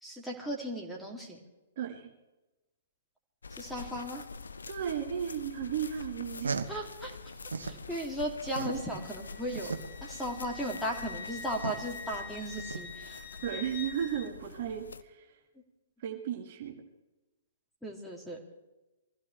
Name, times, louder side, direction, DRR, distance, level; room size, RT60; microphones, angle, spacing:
voice 1, 0.0-1.4 3.5-4.3 6.7-7.3 7.6-9.7 10.0-13.3 17.8-18.4, equal, ahead, -1 dB, 2.8 m, -36 dB
voice 2, 1.8-2.1 4.7-6.6 13.4-15.4 16.0-16.7, right 9 dB, 45° right, 2 dB, 1.9 m, -35 dB
sound 1, 3.4-15.0, left 4 dB, 70° left, 0.7 m, -46 dB
sound 2, 6.1-7.8 8.2-13.2, right 4 dB, 70° right, 1.3 m, -38 dB
Wind instrument woodwind instrument, 8.5-14.3, left 5 dB, 30° left, 1.4 m, -46 dB
24.0 x 15.5 x 3.4 m, 1.1 s
figure-of-eight pair, 115°, 0 cm